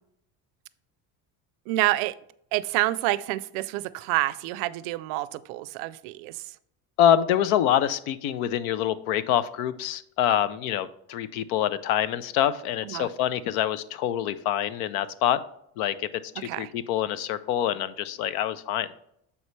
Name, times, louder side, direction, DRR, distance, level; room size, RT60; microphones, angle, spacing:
voice 1, 1.7-2.1 2.5-6.5 12.8-13.1 16.4-16.7, right 17 dB, 85° right, 17 dB, 0.5 m, -28 dB
voice 2, 7.0-15.4 15.8-16.1 16.4-18.9, left 10 dB, 85° left, 15 dB, 0.6 m, -25 dB
7.1 x 5.4 x 3.2 m, 0.72 s
supercardioid pair, 110°, 40 cm